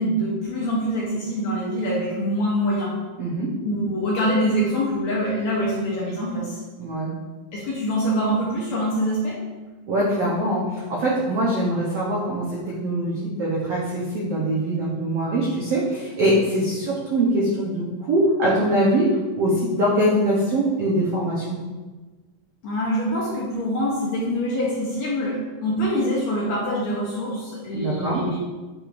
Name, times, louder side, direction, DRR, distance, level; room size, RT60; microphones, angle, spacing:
voice 1, 0.0-3.0 3.6-6.6 7.5-9.4 22.6-28.4, equal, 70° left, -5 dB, 1.8 m, -24 dB
voice 2, 3.2-3.5 6.8-7.1 9.9-19.1 19.4-21.6 27.7-28.2, right 1 dB, 75° right, -6 dB, 1.4 m, -23 dB
8.7 x 4.8 x 2.5 m, 1.3 s
omnidirectional pair, 4.1 m